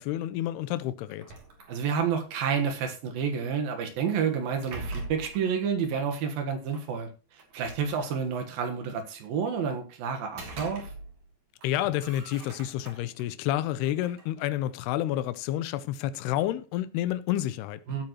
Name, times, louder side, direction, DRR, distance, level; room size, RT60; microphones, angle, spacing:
voice 1, 0.0-1.3 11.6-18.0, left 13 dB, 80° left, 2.7 m, -29 dB
sound 1, 1.1-2.2 4.2-5.5 6.7-6.8 7.4-8.5 10.1-11.3 11.6-13.2 13.7-15.4, right 2 dB, 45° right, 4.0 m, -43 dB
voice 2, 1.7-7.1 7.5-10.9 17.9-18.1, right 6 dB, 65° right, 3.0 m, -29 dB
16.5 x 8.6 x 3.0 m
omnidirectional pair, 4.9 m